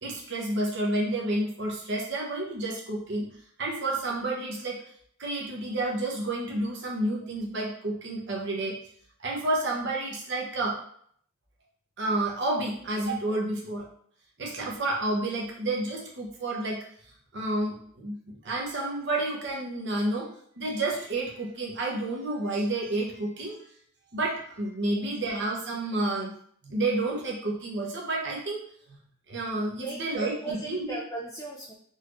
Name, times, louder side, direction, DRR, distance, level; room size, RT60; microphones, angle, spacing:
voice 1, 0.0-3.3 3.6-4.8 5.2-8.8 9.2-10.8 12.0-13.8 14.4-16.8 17.3-20.3 20.6-23.6 24.1-26.3 26.6-28.6 29.3-31.0, right 2 dB, 55° right, -2 dB, 1.0 m, -30 dB
voice 2, 29.8-31.7, right 2 dB, 15° left, -4 dB, 0.4 m, -38 dB
4.0 x 3.1 x 2.6 m, 0.62 s
head